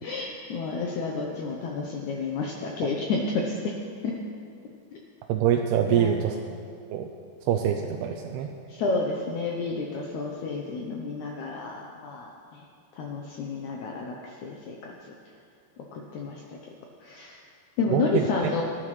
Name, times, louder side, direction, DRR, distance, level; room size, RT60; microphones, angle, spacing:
voice 1, 0.0-3.7 4.0-4.1 5.9-6.1 8.7-12.6 13.0-14.9 15.9-16.4 17.0-17.4 17.8-18.6, left 4 dB, 85° left, -1 dB, 1.6 m, -30 dB
voice 2, 5.3-6.4 6.9-7.1 7.5-8.5 17.9-18.3, right 9 dB, 85° right, 3 dB, 2.6 m, -25 dB
19.5 x 10.5 x 3.2 m, 2.4 s
omnidirectional pair, 4.5 m